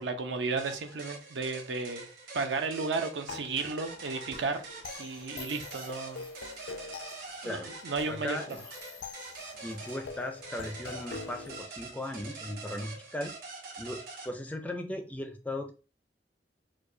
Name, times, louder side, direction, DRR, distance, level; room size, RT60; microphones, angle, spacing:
voice 1, 0.0-2.1 2.3-4.6 5.0-6.2 7.4-8.6, right 4 dB, 80° right, 0.6 m, -33 dB
sound 1, 0.6-14.3, right 3 dB, 55° right, 1.2 m, -45 dB
sound 2, 3.3-11.6, left 5 dB, 80° left, 0.4 m, -45 dB
voice 2, 8.1-8.6 9.6-13.3 13.8-15.7, left 1 dB, 10° left, 0.4 m, -37 dB
4.5 x 2.2 x 2.5 m
head